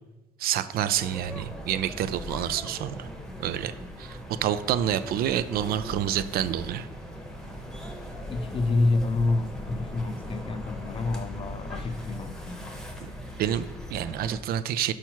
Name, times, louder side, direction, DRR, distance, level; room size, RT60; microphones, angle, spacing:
voice 1, 0.4-3.1 3.4-3.7 4.0-6.9 13.4-14.9, right 10 dB, 65° right, 0.4 m, -28 dB
sound 1, 1.0-14.4, equal, 5° left, 0.9 m, -39 dB
voice 2, 8.3-12.8, left 3 dB, 30° left, 0.4 m, -28 dB
5.7 x 4.6 x 4.5 m
cardioid pair, 110°, 17 cm